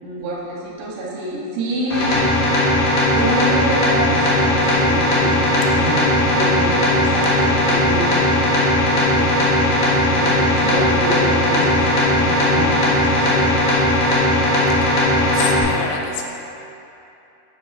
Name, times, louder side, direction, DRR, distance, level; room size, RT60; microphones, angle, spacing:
voice 1, 0.0-2.3 3.1-8.1 8.7-13.5, right 1 dB, 85° right, -5 dB, 3.5 m, -27 dB
sound 1, 1.9-15.6, left 1 dB, 60° left, 2.4 m, -17 dB
voice 2, 15.3-16.3, left 6 dB, 85° left, 1 dB, 2.8 m, -28 dB
8.7 x 7.7 x 2.9 m, 2.8 s
omnidirectional pair, 4.8 m